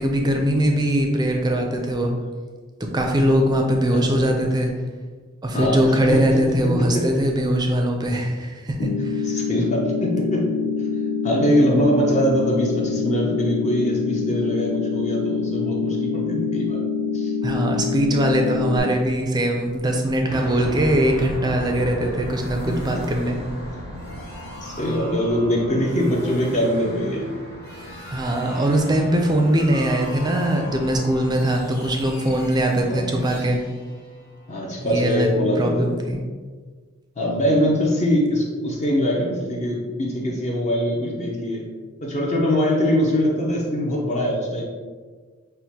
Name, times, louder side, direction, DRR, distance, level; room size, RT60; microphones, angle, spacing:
voice 1, 0.0-2.1 2.8-4.7 5.4-9.3 17.4-23.4 28.1-33.6 34.8-36.2, right 1 dB, 20° right, 2 dB, 0.4 m, -21 dB
voice 2, 3.9-4.3 5.5-6.2 6.6-7.0 9.2-10.5 11.2-16.8 17.1-17.3 22.0-22.1 22.7-22.8 24.6-27.3 32.9-33.1 34.5-35.9 37.2-41.6 42.0-44.6, equal, 35° left, -2 dB, 0.6 m, -22 dB
sound 1, 8.8-18.8, left 5 dB, 80° left, 0.5 m, -25 dB
sound 2, 20.2-34.9, equal, 50° left, 1.1 m, -37 dB
6.3 x 2.1 x 2.8 m, 1.5 s
head